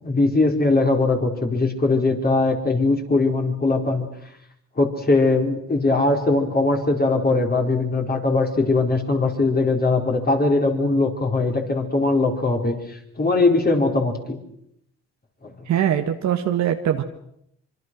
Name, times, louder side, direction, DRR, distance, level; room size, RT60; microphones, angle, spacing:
voice 1, 0.0-4.1 4.8-14.4 15.4-15.7, left 3 dB, 30° left, 2 dB, 4.6 m, -20 dB
voice 2, 15.7-17.0, right 10 dB, 65° right, 5 dB, 1.5 m, -22 dB
25.0 x 24.0 x 6.3 m, 0.75 s
cardioid pair, 90°, 30 cm